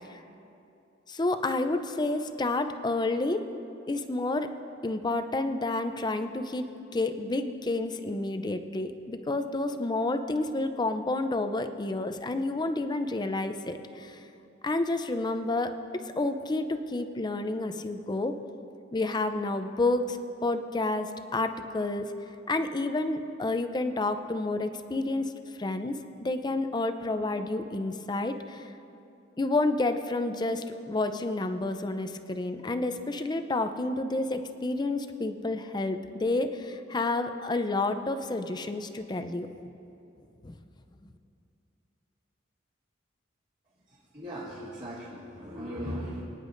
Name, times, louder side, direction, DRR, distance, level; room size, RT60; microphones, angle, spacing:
voice 1, 1.1-3.5 3.9-4.5 4.8-14.2 14.6-15.7 16.2-18.4 18.9-22.1 22.5-25.3 25.6-28.6 29.4-39.5 40.4-40.5, left 2 dB, 20° left, 8 dB, 0.5 m, -30 dB
voice 2, 43.9-46.2, equal, 35° right, -11 dB, 2.4 m, -38 dB
24.5 x 10.0 x 2.6 m, 2.7 s
head